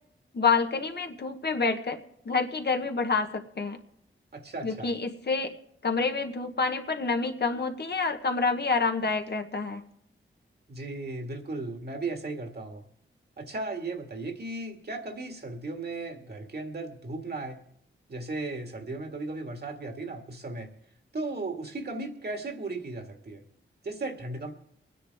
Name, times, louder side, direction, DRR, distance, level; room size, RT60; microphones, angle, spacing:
voice 1, 0.3-2.0 2.2-3.8 4.6-5.5 5.8-9.8, left 4 dB, 55° left, 5 dB, 1.2 m, -28 dB
voice 2, 4.3-4.9 10.7-12.9 13.4-17.6 18.1-20.7 21.1-23.4 23.8-24.5, right 3 dB, 55° right, 4 dB, 1.9 m, -36 dB
23.0 x 10.0 x 3.5 m, 0.70 s
wide cardioid pair, 80°, 21 cm